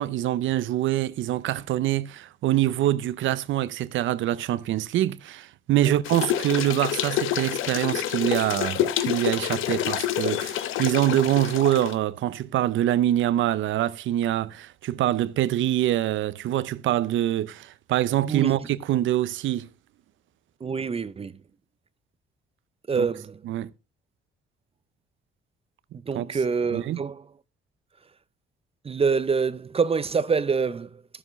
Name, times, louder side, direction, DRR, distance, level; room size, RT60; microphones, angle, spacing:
voice 1, 0.0-19.7 23.0-23.1 23.4-23.7 26.1-26.3 26.7-27.0, right 13 dB, 75° right, 0.6 m, -25 dB
sound 1, 6.0-11.9, left 12 dB, 90° left, 0.8 m, -28 dB
voice 2, 20.6-21.3 22.9-23.4 26.1-27.2 28.8-31.0, right 5 dB, 30° right, 0.5 m, -26 dB
12.5 x 7.3 x 3.1 m
cardioid pair, 90°, 20 cm